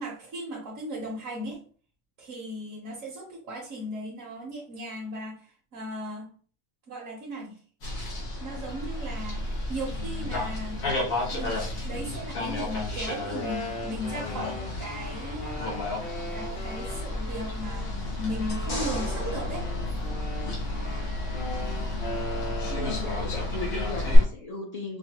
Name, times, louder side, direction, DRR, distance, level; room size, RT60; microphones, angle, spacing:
voice 1, 0.0-1.6 2.2-6.3 6.9-7.6 8.4-10.8 11.3-15.7 16.3-17.9 18.2-19.7 22.7-23.0, equal, 70° right, -5 dB, 1.3 m, -37 dB
sound 1, 7.8-24.2, left 2 dB, 90° left, 1.7 m, -32 dB
Wind instrument woodwind instrument, 13.4-17.9 18.4-23.1, left 1 dB, 30° left, 0.8 m, -39 dB
sound 2, 18.5-21.0 24.1-24.2, left 2 dB, 65° left, 1.9 m, -35 dB
voice 2, 21.3-22.0 22.8-25.0, left 2 dB, 50° left, 1 dB, 0.4 m, -37 dB
5.4 x 2.3 x 2.9 m, 0.43 s
omnidirectional pair, 1.4 m